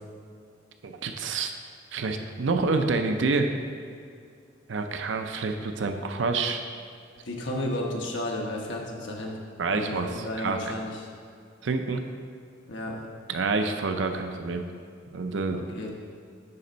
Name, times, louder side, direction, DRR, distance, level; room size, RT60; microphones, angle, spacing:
voice 1, 0.8-1.5 1.9-3.5 4.7-6.6 9.6-10.6 11.6-12.0 13.3-14.7 15.1-15.6, right 3 dB, 75° right, 6 dB, 0.5 m, -27 dB
voice 2, 7.2-9.4 9.7-11.0 12.7-13.1 15.5-15.9, left 1 dB, 75° left, 0 dB, 1.1 m, -33 dB
9.7 x 4.2 x 3.9 m, 2.3 s
head